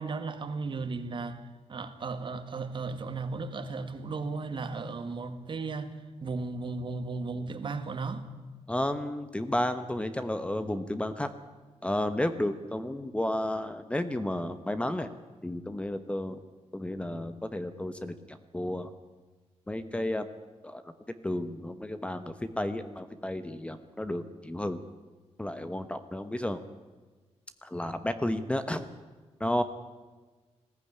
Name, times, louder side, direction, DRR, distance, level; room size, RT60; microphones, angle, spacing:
voice 1, 0.0-1.4 1.7-5.9 6.2-8.3, right 4 dB, 45° right, 9 dB, 1.8 m, -35 dB
voice 2, 8.7-11.3 11.8-15.1 15.4-16.4 16.7-18.9 19.7-20.3 20.6-20.8 21.2-24.8 25.4-26.6 27.6-28.9 29.4-29.6, left 1 dB, 10° left, 10 dB, 1.0 m, -32 dB
20.5 x 15.5 x 9.9 m, 1.4 s
wide cardioid pair, 150°, 11 cm